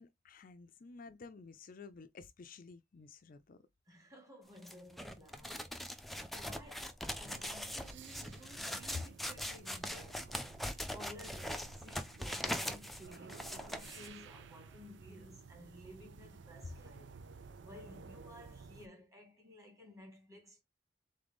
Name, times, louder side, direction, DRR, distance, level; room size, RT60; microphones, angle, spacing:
voice 1, 0.0-3.6, left 4 dB, 50° left, 0.5 m, -53 dB
voice 2, 3.9-10.4 10.7-17.1 17.6-20.6, left 1 dB, 20° right, 1.8 m, -55 dB
sound 1, 4.6-14.1, equal, ahead, 0.5 m, -41 dB
sound 2, 7.3-18.9, right 5 dB, 80° right, 0.5 m, -54 dB
3.8 x 3.8 x 3.5 m
head